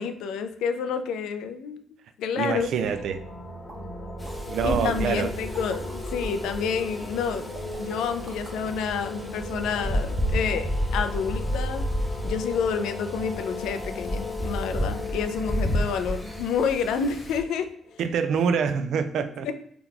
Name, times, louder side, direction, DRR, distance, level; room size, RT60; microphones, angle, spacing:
voice 1, 0.0-1.8 2.2-2.7 4.6-7.5 7.8-11.9 12.2-17.7 19.4-19.5, left 6 dB, 85° left, 8 dB, 0.3 m, -29 dB
voice 2, 2.3-3.2 4.5-5.3 18.0-19.5, right 6 dB, 75° right, 10 dB, 0.3 m, -26 dB
sound 1, 2.5-18.1, left 2 dB, 40° left, 0.8 m, -37 dB
sound 2, 3.7-3.8 4.3-4.4 5.2-6.3 7.5-8.6 9.7-10.1 10.5-10.8 11.0-11.4 11.6-11.7, right 2 dB, 35° right, 1.0 m, -45 dB
Wind, 4.2-17.4, equal, ahead, 0.6 m, -32 dB
2.8 x 2.3 x 3.6 m, 0.64 s
cardioid pair, 90°, 0 cm